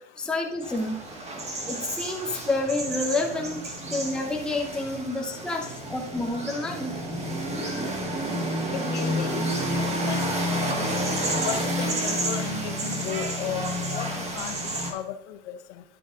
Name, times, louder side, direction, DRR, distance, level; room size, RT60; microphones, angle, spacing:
voice 1, 0.2-1.0 1.7-7.2, left 2 dB, ahead, 0 dB, 0.8 m, -29 dB
sound 1, 0.6-14.9, right 1 dB, 15° right, 1.6 m, -30 dB
voice 2, 8.7-10.9 11.4-14.6 14.9-15.8, left 10 dB, 65° left, 8 dB, 1.1 m, -36 dB
10.5 x 8.2 x 2.5 m, 0.86 s
supercardioid pair, 130°, 37 cm